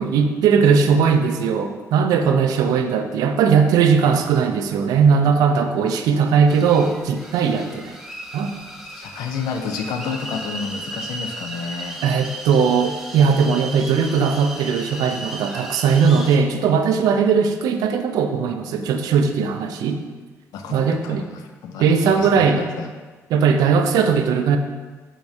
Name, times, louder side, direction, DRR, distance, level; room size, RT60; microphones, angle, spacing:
voice 1, 0.0-8.0 8.3-8.5 12.0-20.0 20.7-21.2 21.8-22.6 23.3-24.6, right 6 dB, 85° right, 6 dB, 0.4 m, -18 dB
sound 1, 6.5-16.4, right 1 dB, 5° right, 0.5 m, -35 dB
voice 2, 8.9-12.0 20.5-22.9, left 5 dB, 85° left, 5 dB, 0.4 m, -30 dB
4.8 x 3.5 x 2.7 m, 1.3 s
cardioid pair, 80°, 6 cm